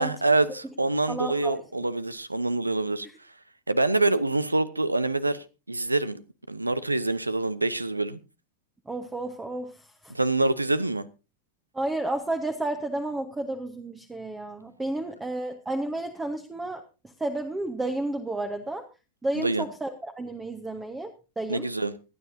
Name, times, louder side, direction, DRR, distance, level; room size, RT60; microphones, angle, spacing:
voice 1, 0.0-3.1 3.7-6.2 6.5-8.2 10.1-11.1 19.4-19.6 21.5-21.9, right 2 dB, 85° right, 0.7 m, -26 dB
voice 2, 1.1-1.6 8.9-10.1 11.7-18.8 19.2-21.7, right 2 dB, 10° right, 1.1 m, -32 dB
24.5 x 9.6 x 2.7 m
figure-of-eight pair, 90°, 0 cm